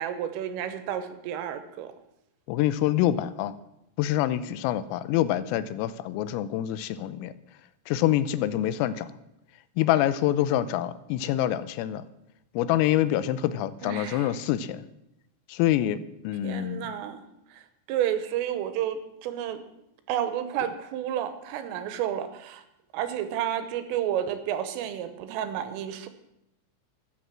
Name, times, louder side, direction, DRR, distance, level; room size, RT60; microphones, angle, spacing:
voice 1, 0.0-1.9 13.8-14.3 16.4-19.6 20.1-22.7 22.9-26.1, right 10 dB, 85° right, 11 dB, 3.5 m, -31 dB
voice 2, 2.5-3.6 4.0-7.3 7.9-9.1 9.8-12.0 12.5-14.9 15.5-16.9, left 13 dB, 90° left, 14 dB, 3.4 m, -26 dB
13.0 x 11.0 x 7.4 m, 0.84 s
omnidirectional pair, 6.0 m